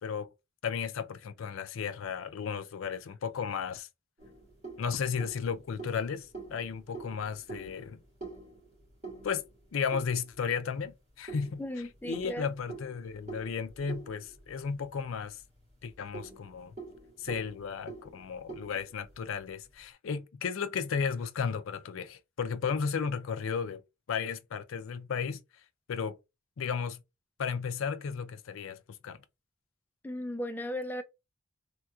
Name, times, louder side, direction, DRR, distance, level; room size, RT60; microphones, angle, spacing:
voice 1, 0.6-3.9 4.8-8.0 9.2-9.4 9.7-11.6 12.0-15.4 15.8-16.7 17.2-23.8 24.1-25.4 25.9-26.2 26.6-27.0 27.4-29.2, left 6 dB, 80° left, 0.4 m, -34 dB
sound 1, 4.2-10.6 11.3-15.2 15.5-15.6 16.0-19.5, right 4 dB, 30° right, 2.2 m, -46 dB
voice 2, 11.6-12.5 30.0-31.0, equal, 10° left, 0.3 m, -36 dB
3.4 x 2.9 x 2.3 m
head